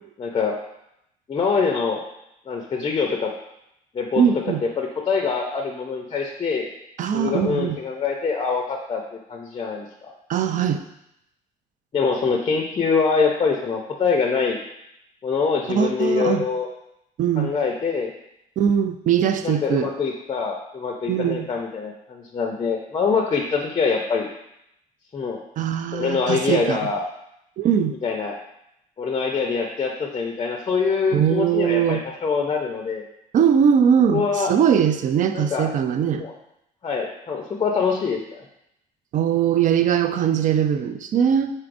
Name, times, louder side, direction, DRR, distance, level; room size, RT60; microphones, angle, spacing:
voice 1, 0.2-0.6 1.3-2.0 2.5-3.3 3.9-4.2 4.6-6.7 7.1-9.0 9.3-10.1 11.9-14.6 15.2-16.7 17.4-18.1 19.4-24.3 25.1-25.4 25.9-27.0 28.0-28.4 29.0-33.0 34.1-34.5 35.3-35.7 36.2-36.3 36.8-38.4, left 5 dB, 30° left, 2 dB, 0.5 m, -24 dB
voice 2, 4.2-4.6 7.0-7.8 10.3-10.8 15.7-16.5 17.2-17.5 18.6-19.9 21.1-21.5 25.6-26.8 27.6-27.9 31.1-32.0 33.3-36.2 39.1-41.5, right 8 dB, 50° right, 9 dB, 0.4 m, -21 dB
4.6 x 4.2 x 2.5 m, 0.81 s
cardioid pair, 110°, 17 cm